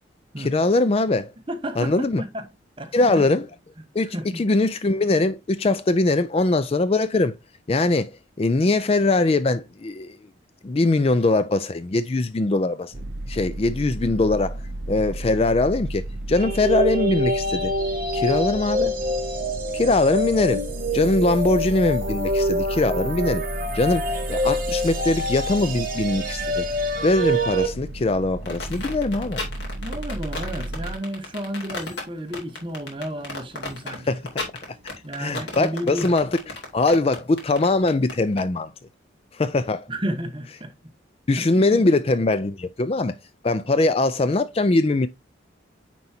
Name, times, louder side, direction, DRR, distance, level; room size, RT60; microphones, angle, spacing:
voice 1, 0.4-1.3 1.8-2.2 2.9-3.4 3.9-7.3 7.7-8.1 8.4-10.2 10.6-12.9 13.3-14.6 14.9-17.7 18.1-18.9 19.7-20.6 20.9-23.4 23.7-26.7 27.0-29.4 34.1-34.2 35.2-36.3 36.7-38.7 39.4-39.8 41.3-43.1 43.4-45.1, left 2 dB, 30° left, 0.4 m, -21 dB
voice 2, 1.5-2.5 2.8-3.3 4.0-4.4 29.8-34.2 35.0-36.1 39.9-40.7 41.4-41.8, right 1 dB, 25° right, 1.0 m, -32 dB
sound 1, 12.9-30.9, right 1 dB, 70° right, 0.6 m, -34 dB
sound 2, 16.4-27.7, equal, 45° right, 1.5 m, -26 dB
sound 3, 28.5-38.4, left 3 dB, 65° left, 2.7 m, -34 dB
9.4 x 4.6 x 2.7 m
head